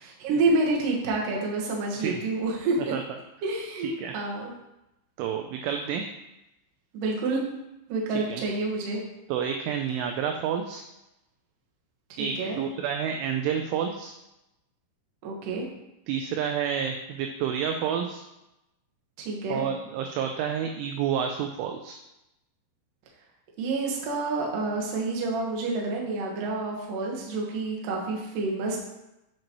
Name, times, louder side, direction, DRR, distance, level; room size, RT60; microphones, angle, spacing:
voice 1, 0.0-2.9 3.4-4.5 6.9-7.4 7.9-9.0 12.1-12.6 15.2-15.7 19.2-19.7 23.6-28.8, right 3 dB, 65° right, -2 dB, 2.1 m, -28 dB
voice 2, 5.2-6.1 8.3-8.4 9.3-10.8 12.2-14.1 16.1-18.2 19.5-22.0, right 8 dB, 85° right, 4 dB, 2.8 m, -29 dB
7.6 x 7.4 x 3.0 m, 0.92 s
omnidirectional pair, 5.9 m